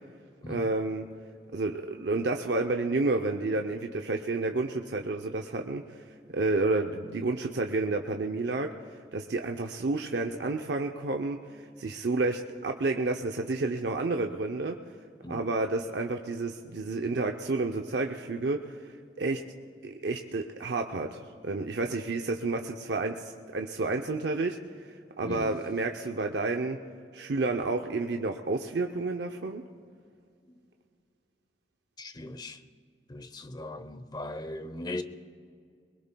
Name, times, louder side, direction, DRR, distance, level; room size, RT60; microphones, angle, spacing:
voice 1, 0.5-1.1 1.5-6.0 6.3-8.7 9.1-11.4 11.8-14.8 15.3-18.8 19.2-19.4 19.8-24.9 25.2-26.8 27.1-29.6, right 3 dB, 70° right, 0.6 m, -30 dB
voice 2, 25.2-25.6 32.0-32.6 33.1-35.0, left 1 dB, 25° left, 0.7 m, -38 dB
22.5 x 21.0 x 2.3 m
head